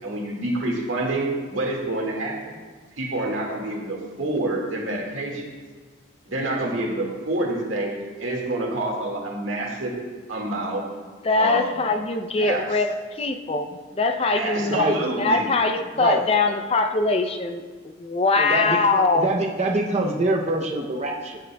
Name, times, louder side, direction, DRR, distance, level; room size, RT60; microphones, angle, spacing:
voice 1, 0.0-2.6 3.0-5.4 6.3-10.0 10.3-10.8 11.4-11.9 12.4-12.8 14.3-15.5, right 2 dB, 85° right, -1 dB, 1.8 m, -27 dB
voice 2, 11.2-13.7 13.9-17.6 18.0-19.3, left 3 dB, 30° left, 7 dB, 0.4 m, -22 dB
voice 3, 14.6-15.0 15.9-16.2 18.4-21.4, right 2 dB, 35° right, 0 dB, 0.6 m, -25 dB
15.0 x 6.5 x 2.2 m, 1.4 s
head